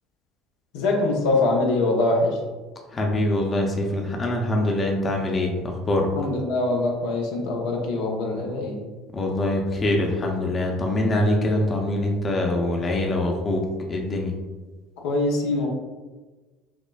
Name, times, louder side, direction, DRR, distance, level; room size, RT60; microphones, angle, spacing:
voice 1, 0.7-2.4 6.1-8.8 15.0-15.7, left 2 dB, 75° left, -1 dB, 0.6 m, -23 dB
voice 2, 2.9-6.1 9.1-14.3, left 1 dB, 30° left, 1 dB, 0.6 m, -24 dB
5.8 x 2.0 x 2.3 m, 1.3 s
hypercardioid pair, 70°, 0 cm